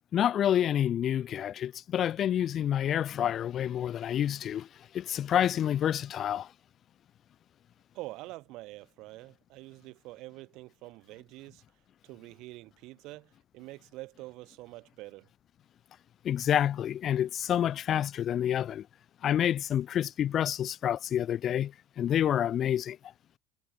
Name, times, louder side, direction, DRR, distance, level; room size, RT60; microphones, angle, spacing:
voice 1, 0.1-4.7 4.9-6.5 16.2-18.9 19.2-23.0, left 10 dB, 50° left, 1.0 m, -28 dB
voice 2, 7.9-11.6 12.0-15.3, right 20 dB, 65° right, 7.9 m, -46 dB
hypercardioid pair, 70°, 0 cm